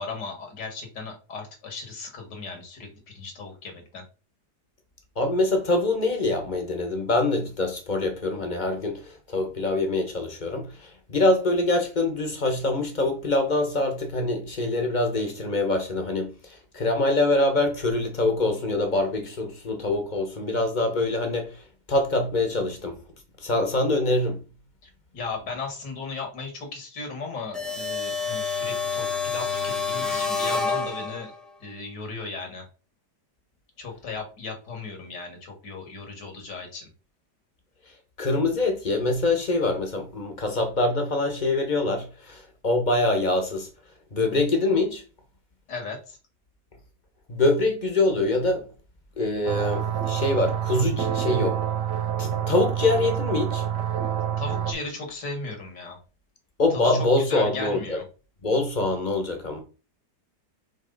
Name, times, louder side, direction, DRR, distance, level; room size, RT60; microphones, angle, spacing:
voice 1, 0.0-4.0 24.8-31.3 31.6-32.6 33.8-36.9 45.7-46.2 54.4-56.0 56.7-58.1, left 4 dB, 75° left, 2.5 m, -36 dB
voice 2, 5.2-21.6 21.9-23.0 23.4-24.4 38.2-43.7 44.1-45.0 47.3-48.7 49.2-51.6 52.2-53.7 56.6-58.0 58.4-59.6, left 2 dB, 30° left, 1.2 m, -24 dB
sound 1, 27.5-31.4, left 4 dB, ahead, 0.7 m, -28 dB
sound 2, 49.5-54.7, right 9 dB, 80° right, 1.7 m, -27 dB
5.5 x 4.8 x 4.0 m
omnidirectional pair, 1.8 m